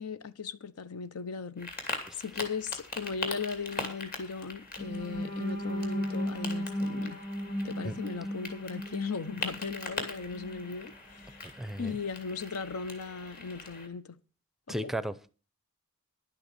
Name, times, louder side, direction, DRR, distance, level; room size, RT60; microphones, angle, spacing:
voice 1, 0.0-7.2 7.6-11.4 11.8-14.2 14.7-14.9, left 5 dB, 85° left, 0.7 m, -38 dB
sound 1, 1.6-13.9, left 3 dB, 40° left, 2.7 m, -42 dB
sound 2, 4.8-10.7 11.2-11.4 11.7-11.9, equal, 20° left, 2.1 m, -36 dB
voice 2, 11.5-12.0 14.7-15.3, right 1 dB, ahead, 0.5 m, -35 dB
11.0 x 8.9 x 6.7 m
head